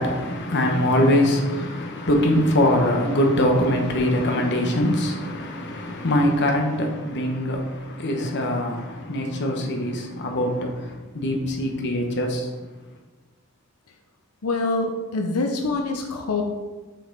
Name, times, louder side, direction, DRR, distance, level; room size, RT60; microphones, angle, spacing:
voice 1, 0.0-12.5, left 1 dB, 55° left, 1.0 m, -23 dB
voice 2, 14.4-16.4, left 3 dB, 90° left, 0.7 m, -25 dB
6.6 x 5.4 x 3.9 m
head